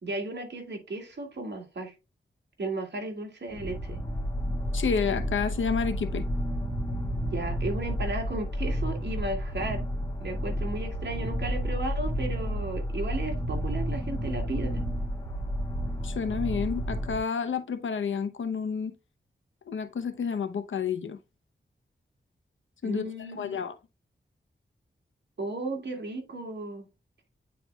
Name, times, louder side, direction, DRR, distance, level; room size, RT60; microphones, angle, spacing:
voice 1, 0.0-1.9 2.6-4.0 7.3-9.9 10.2-14.8 22.8-23.6 25.4-26.9, right 2 dB, 60° right, 2.1 m, -35 dB
sound 1, 3.5-17.2, equal, 15° left, 2.7 m, -31 dB
voice 2, 4.7-6.2 16.0-18.9 19.7-21.2 22.8-23.7, left 6 dB, 80° left, 0.8 m, -30 dB
9.3 x 4.5 x 2.3 m
wide cardioid pair, 70°, 20 cm